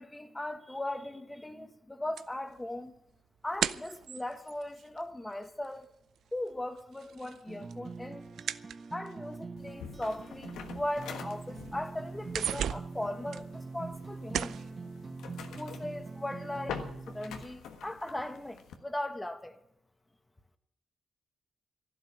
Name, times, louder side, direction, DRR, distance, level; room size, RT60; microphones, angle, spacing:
voice 1, 0.0-3.0 3.4-5.9 6.3-8.3 8.9-14.7 15.6-16.8 17.1-19.6, left 1 dB, 15° left, 1.7 m, -38 dB
sound 1, 2.2-5.9 6.2-9.4 10.1-10.2 10.7-10.8 11.1-11.7 12.0-14.0 14.3-14.7, right 9 dB, 80° right, 0.5 m, -37 dB
sound 2, 7.5-17.5, right 4 dB, 45° right, 1.1 m, -44 dB
sound 3, 9.6-18.8, left 6 dB, 85° left, 1.4 m, -46 dB
13.0 x 11.5 x 7.2 m
supercardioid pair, 60°, 0 cm